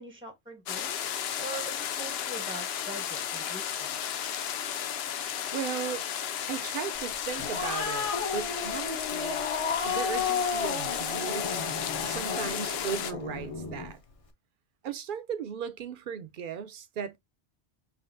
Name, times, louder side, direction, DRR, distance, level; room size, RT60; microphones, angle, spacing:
voice 1, 0.0-4.3, right 2 dB, 5° right, 0.6 m, -43 dB
sound 1, 0.7-13.1, left 9 dB, 70° left, 0.8 m, -34 dB
voice 2, 5.5-6.0 6.5-9.4 9.8-11.6 12.0-14.0 14.8-17.2, right 8 dB, 60° right, 0.6 m, -36 dB
Growling, 7.1-13.9, left 5 dB, 35° left, 0.7 m, -33 dB
5.7 x 2.5 x 2.5 m
omnidirectional pair, 1.1 m